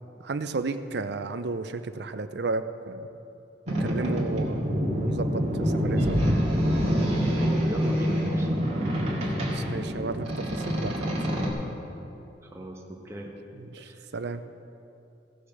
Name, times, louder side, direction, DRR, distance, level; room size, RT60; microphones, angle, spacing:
voice 1, 0.2-3.1 3.8-6.2 9.5-11.2 13.7-13.8 14.1-14.4, right 3 dB, 60° right, 11 dB, 0.6 m, -33 dB
Boat Water vehicle, 3.7-11.5, equal, 35° right, 2.2 m, -26 dB
voice 2, 7.3-8.5 12.4-13.3 13.8-14.0, equal, 15° right, -1 dB, 1.4 m, -36 dB
16.0 x 6.5 x 6.6 m, 2.7 s
head